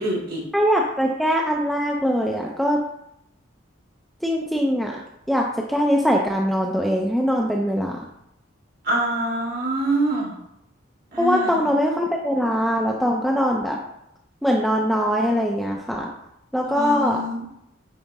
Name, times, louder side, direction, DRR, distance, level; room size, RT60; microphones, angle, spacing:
voice 1, 0.0-0.4 8.8-10.3 11.1-11.7 16.7-17.4, right 1 dB, 45° right, -3 dB, 2.8 m, -25 dB
voice 2, 0.5-2.8 4.2-5.0 5.3-8.0 11.2-13.8 14.4-16.1 16.5-17.2, equal, ahead, 0 dB, 0.5 m, -22 dB
9.5 x 4.9 x 3.5 m, 0.79 s
head